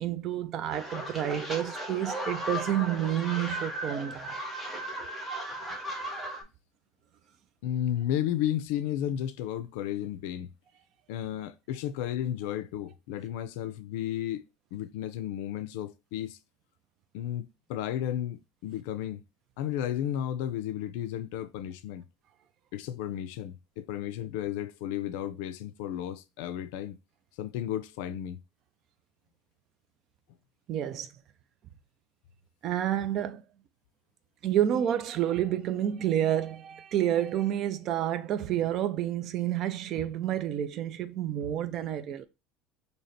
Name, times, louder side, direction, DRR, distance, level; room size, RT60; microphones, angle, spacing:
voice 1, 0.0-4.4 30.7-31.1 32.6-33.4 34.4-42.2, right 11 dB, 40° right, 0.4 m, -29 dB
sound 1, 0.7-6.4, equal, ahead, 1.0 m, -36 dB
voice 2, 7.6-10.5 11.1-14.5 14.7-16.4 17.1-19.2 19.6-22.0 22.7-27.0 27.4-28.4, left 11 dB, 80° left, 0.4 m, -33 dB
3.2 x 2.8 x 4.1 m
cardioid pair, 160°, 0 cm